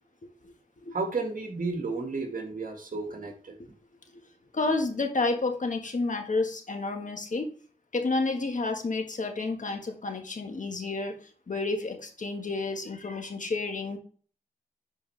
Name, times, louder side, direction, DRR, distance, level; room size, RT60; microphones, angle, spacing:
voice 1, 0.9-3.6, right 3 dB, 65° right, 3 dB, 1.8 m, -32 dB
voice 2, 4.5-7.5 7.9-11.2 11.5-14.0, left 3 dB, 55° left, 4 dB, 1.5 m, -30 dB
11.0 x 4.6 x 3.3 m, 0.42 s
cardioid pair, 55°, 15 cm